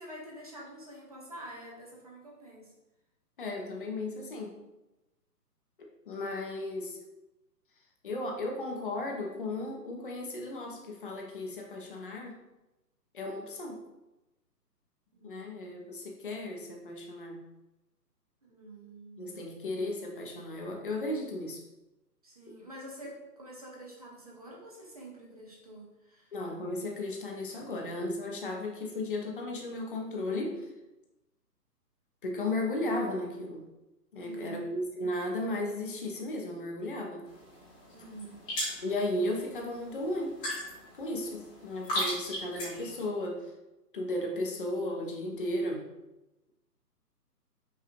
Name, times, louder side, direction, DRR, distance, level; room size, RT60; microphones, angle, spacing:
voice 1, 0.0-2.7 15.1-15.8 18.4-19.4 22.2-26.3 34.2-34.6 37.9-38.4, right 1 dB, 25° right, -3 dB, 0.5 m, -47 dB
voice 2, 3.4-4.5 6.1-7.0 8.0-12.4 13.1-13.8 15.2-17.5 19.2-21.6 26.3-30.7 32.2-33.7 34.1-37.2 38.8-40.4 41.0-43.5 43.9-45.9, left 1 dB, 35° left, 0 dB, 0.6 m, -35 dB
sound 1, 37.3-43.0, equal, 10° left, 0.9 m, -38 dB
5.8 x 2.4 x 2.6 m, 0.99 s
figure-of-eight pair, 135°, 49 cm